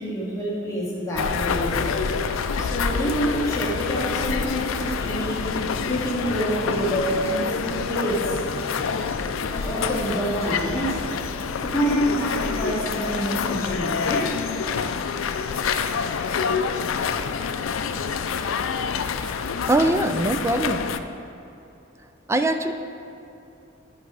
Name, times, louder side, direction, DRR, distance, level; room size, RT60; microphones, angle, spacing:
voice 1, 0.0-1.9 2.6-8.4 9.5-11.0 11.6-14.4, equal, 15° left, -6 dB, 1.7 m, -27 dB
sound 1, 1.1-21.0, left 6 dB, 85° left, 0.4 m, -27 dB
sound 2, 3.9-11.3, equal, 30° right, 1.4 m, -44 dB
voice 2, 19.7-20.8 22.3-22.7, right 2 dB, 15° right, 8 dB, 0.4 m, -22 dB
12.5 x 4.8 x 4.8 m, 2.8 s
head